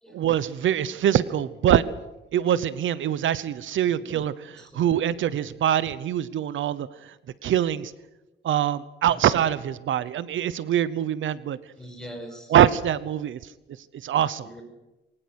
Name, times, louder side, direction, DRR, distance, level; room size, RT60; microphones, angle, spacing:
voice 1, 0.1-1.8 2.3-6.9 7.4-7.9 8.4-11.6 12.5-13.4 14.0-14.5, right 10 dB, 85° right, 17 dB, 0.9 m, -23 dB
voice 2, 11.8-12.6 14.4-14.6, equal, 5° left, 2 dB, 5.6 m, -42 dB
22.0 x 19.0 x 8.1 m, 1.0 s
wide cardioid pair, 165°, 20 cm